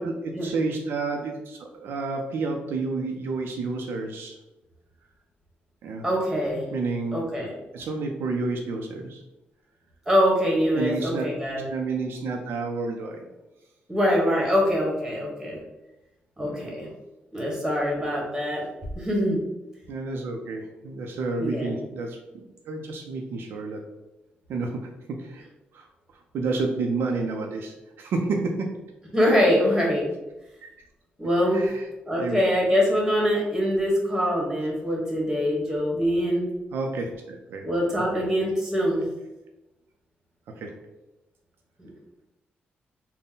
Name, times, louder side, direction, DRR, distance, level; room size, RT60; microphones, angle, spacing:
voice 1, 0.0-4.4 5.8-6.0 6.7-7.2 7.7-9.2 10.7-11.3 11.7-13.2 16.4-16.7 19.9-22.2 22.7-23.8 24.5-25.4 25.7-25.9 26.3-28.7 30.6-30.7 31.5-31.9 32.2-32.4 36.7-37.7 37.9-38.3 40.5-40.7, right 3 dB, 75° right, 2 dB, 0.5 m, -30 dB
voice 2, 6.0-6.7 7.1-7.5 10.1-11.7 13.9-15.6 16.4-16.9 17.3-18.6 18.9-19.4 21.4-21.7 29.1-30.1 31.2-31.6 32.1-36.5 37.6-39.0 41.8-41.9, equal, 10° right, -2 dB, 1.3 m, -24 dB
4.0 x 2.1 x 3.7 m, 0.98 s
cardioid pair, 125°, 4 cm